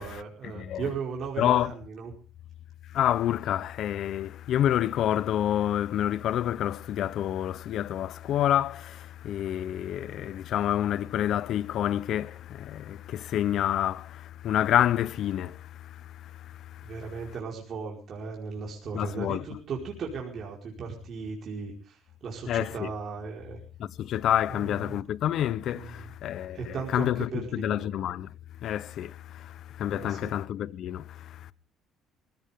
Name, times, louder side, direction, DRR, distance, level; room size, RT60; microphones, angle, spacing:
voice 1, 0.0-2.1 16.8-23.6 24.5-25.0 25.7-26.1 26.5-27.9 29.9-30.3, right 5 dB, 45° right, 4.7 m, -37 dB
voice 2, 0.5-0.9 1.4-1.7 2.9-16.9 18.9-19.4 22.5-22.9 23.8-28.3 28.6-31.5, left 11 dB, 60° left, 0.7 m, -28 dB
20.5 x 17.0 x 3.6 m
cardioid pair, 120°, 0 cm